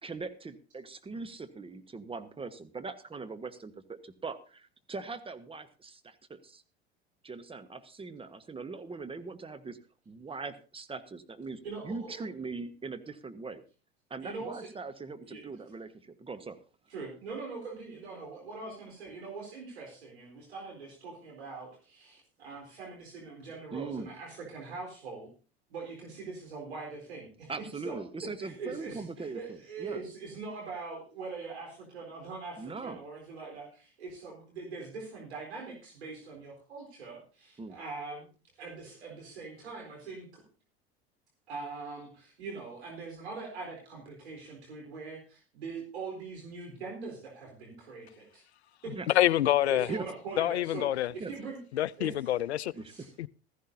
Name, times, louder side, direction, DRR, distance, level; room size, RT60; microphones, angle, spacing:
voice 1, 0.0-6.6 7.2-9.8 10.1-13.6 14.1-16.6 23.7-24.1 27.5-30.0 32.6-33.0 37.6-37.8 49.0-49.1 49.9-50.0 51.2-51.3 52.7-53.1, right 4 dB, 15° right, 1.2 m, -41 dB
voice 2, 11.6-12.2 14.2-14.7 15.2-15.4 16.9-25.3 25.7-27.5 27.8-38.3 38.6-40.4 41.5-48.4 48.8-49.2 49.7-51.6 52.0-52.3 52.9-53.1, right 4 dB, 80° right, 4.0 m, -42 dB
voice 3, 49.1-49.9 50.4-51.1 51.7-52.7 53.2-53.3, left 13 dB, 80° left, 0.5 m, -26 dB
15.0 x 14.5 x 2.7 m
hypercardioid pair, 75°, 32 cm